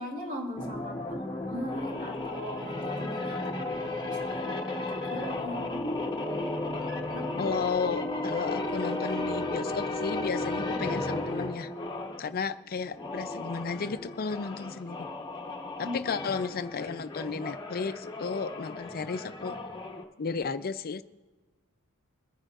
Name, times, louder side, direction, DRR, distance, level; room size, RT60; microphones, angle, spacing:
voice 1, 0.0-5.8 7.1-7.6 15.8-16.1, equal, 40° right, -1 dB, 3.1 m, -40 dB
sound 1, 0.6-12.2 12.9-20.0, left 2 dB, 20° left, 1.0 m, -34 dB
voice 2, 7.4-11.7 12.2-15.1 15.8-19.6 20.2-21.0, left 5 dB, 45° left, 11 dB, 0.5 m, -33 dB
23.0 x 9.9 x 2.5 m, 1.3 s
head